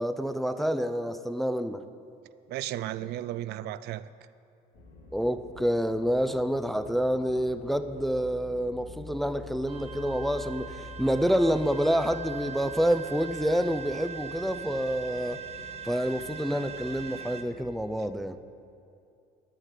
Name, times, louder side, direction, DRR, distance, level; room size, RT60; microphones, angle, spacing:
voice 1, 0.0-1.8 5.1-15.4 15.8-18.4, equal, ahead, 0.4 m, -28 dB
voice 2, 2.5-4.1, right 13 dB, 75° right, 0.4 m, -34 dB
sound 1, 4.7-17.7, left 2 dB, 85° left, 2.2 m, -47 dB
sound 2, 9.7-17.4, right 7 dB, 35° right, 0.9 m, -41 dB
9.9 x 9.2 x 6.5 m
cardioid pair, 110°, 17 cm